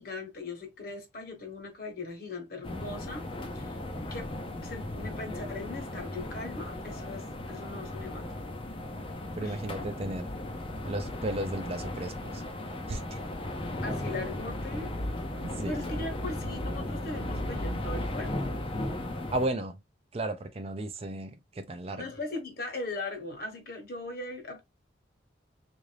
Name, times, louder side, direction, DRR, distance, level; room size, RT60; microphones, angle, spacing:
voice 1, 0.0-3.3 3.5-3.8 4.1-8.3 9.4-9.6 13.8-15.0 15.3-18.6 22.0-24.6, left 3 dB, 50° left, 1.1 m, -39 dB
sound 1, 2.6-19.5, left 1 dB, 30° left, 0.5 m, -36 dB
voice 2, 9.4-10.3 10.8-12.4 12.9-13.2 15.5-15.8 19.3-19.8 20.1-22.1, right 1 dB, 30° right, 0.5 m, -34 dB
3.8 x 2.6 x 3.2 m
head